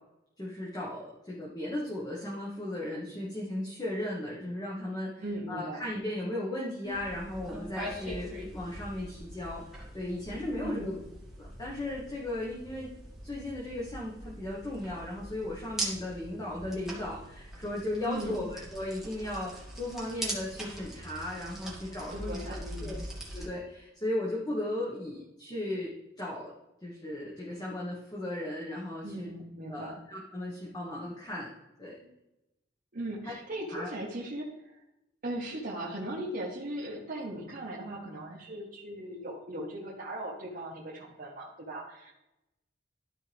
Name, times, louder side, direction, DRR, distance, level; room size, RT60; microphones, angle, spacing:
voice 1, 0.4-10.9 11.4-12.9 13.2-19.5 19.8-23.0 23.3-25.9 26.2-26.5 26.8-29.3 29.7-31.5 31.8-31.9 33.2-33.3 33.7-33.9, left 1 dB, 20° left, -5 dB, 1.3 m, -36 dB
voice 2, 5.2-5.8 10.6-10.9 18.1-18.5 22.1-23.0 29.0-30.0 32.9-34.8 35.2-42.1, right 1 dB, 50° right, -5 dB, 1.3 m, -38 dB
sound 1, 6.8-23.5, right 1 dB, ahead, 1.8 m, -42 dB
12.5 x 4.6 x 3.4 m, 0.93 s
head